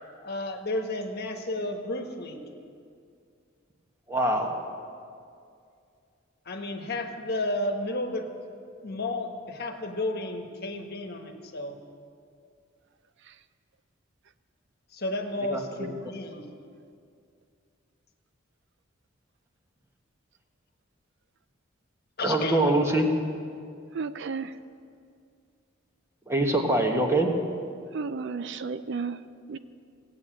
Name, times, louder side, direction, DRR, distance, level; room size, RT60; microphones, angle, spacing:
voice 1, 0.2-2.4 6.4-8.3 8.8-11.7 14.9-16.5 22.2-22.8, left 2 dB, 50° left, 4 dB, 1.3 m, -32 dB
voice 2, 4.1-4.6 15.4-15.9 22.2-23.1 26.3-27.3, right 1 dB, 15° right, 2 dB, 1.4 m, -24 dB
voice 3, 23.9-24.5 27.9-29.2 29.5-29.6, right 5 dB, 60° right, 12 dB, 0.5 m, -32 dB
17.5 x 8.5 x 7.6 m, 2.4 s
head